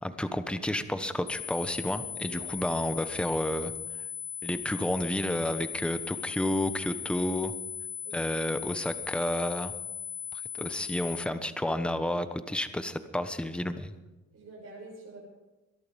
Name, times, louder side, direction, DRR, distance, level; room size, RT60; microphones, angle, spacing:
voice 1, 0.0-3.7 4.4-7.5 8.1-9.7 10.3-13.9, left 1 dB, 5° left, 10 dB, 1.2 m, -31 dB
sound 1, 1.3-11.3, left 7 dB, 45° left, 1.2 m, -38 dB
voice 2, 14.3-15.2, right 2 dB, 55° right, -5 dB, 6.9 m, -47 dB
22.0 x 11.5 x 5.3 m, 1.1 s
cardioid pair, 90°, 30 cm